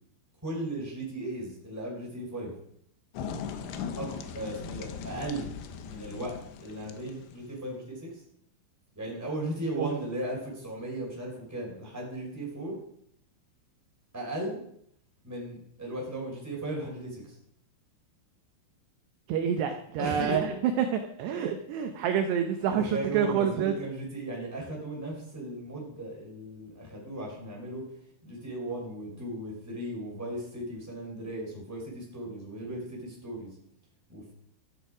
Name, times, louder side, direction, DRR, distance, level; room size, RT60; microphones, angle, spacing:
voice 1, 0.4-2.5 4.0-5.5 5.8-8.2 8.9-12.8 14.1-14.6 15.2-17.4 20.0-20.5 22.7-27.8 28.2-33.6 34.1-34.3, right 1 dB, 5° right, -3 dB, 3.9 m, -36 dB
sound 1, 3.1-7.5, left 6 dB, 75° left, 2.8 m, -39 dB
voice 2, 19.3-20.5 20.8-23.8, right 8 dB, 75° right, 6 dB, 2.6 m, -28 dB
13.0 x 11.0 x 5.0 m, 0.71 s
omnidirectional pair, 5.7 m